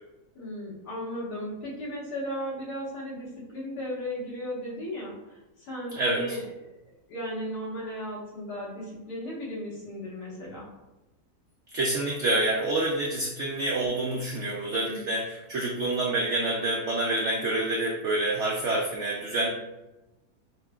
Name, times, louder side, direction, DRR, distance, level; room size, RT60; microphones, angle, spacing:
voice 1, 0.4-6.4 6.7-6.8 7.1-10.7 14.7-15.0, equal, 75° left, -6 dB, 1.7 m, -36 dB
voice 2, 11.7-19.5, right 2 dB, 90° right, -2 dB, 0.6 m, -27 dB
5.3 x 2.1 x 2.2 m, 1.0 s
omnidirectional pair, 1.8 m